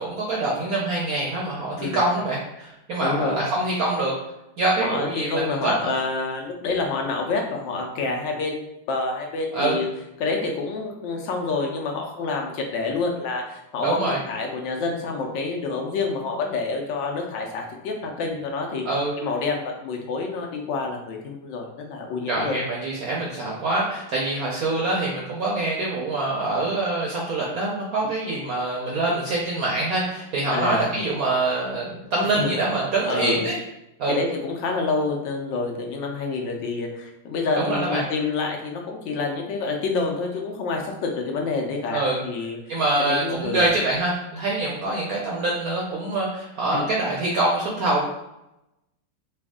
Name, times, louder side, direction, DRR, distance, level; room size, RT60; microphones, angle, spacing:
voice 1, 0.0-4.1 4.6-5.9 9.5-9.8 13.8-14.2 18.8-19.1 22.3-33.5 34.0-34.2 37.6-38.0 41.9-42.2 42.7-48.1, right 2 dB, 70° right, -3 dB, 0.8 m, -25 dB
voice 2, 3.0-3.4 4.8-8.6 8.9-9.9 10.2-18.8 19.2-22.6 30.5-30.9 32.4-32.6 33.1-33.4 34.1-43.6 46.7-46.8, left 3 dB, 75° left, 1 dB, 1.3 m, -28 dB
3.4 x 2.3 x 3.5 m, 0.89 s
omnidirectional pair, 2.1 m